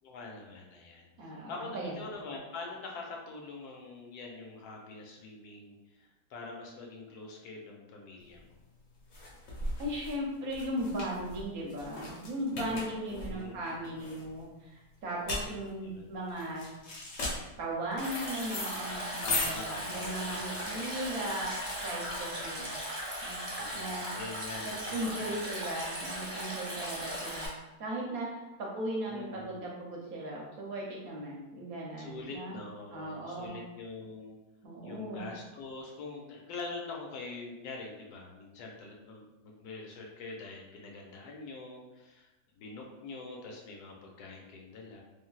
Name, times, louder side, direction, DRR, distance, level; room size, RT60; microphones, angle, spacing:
voice 1, 0.0-8.6 13.1-13.8 15.8-16.1 19.2-20.7 23.6-25.5 29.1-29.6 32.0-34.4 34.8-42.3 42.5-45.0, left 3 dB, 80° left, -1 dB, 1.1 m, -44 dB
voice 2, 1.2-2.0 9.8-16.7 17.6-21.5 21.8-22.7 23.2-23.4 23.7-24.1 24.6-27.5 27.8-32.6 32.9-33.6 34.6-35.3, right 1 dB, 70° right, -2 dB, 1.0 m, -37 dB
sound 1, 8.3-22.7, left 2 dB, 60° left, 0.9 m, -39 dB
Stream, 18.0-27.5, equal, 30° right, 0.5 m, -38 dB
3.2 x 2.5 x 2.3 m, 1.0 s
omnidirectional pair, 1.7 m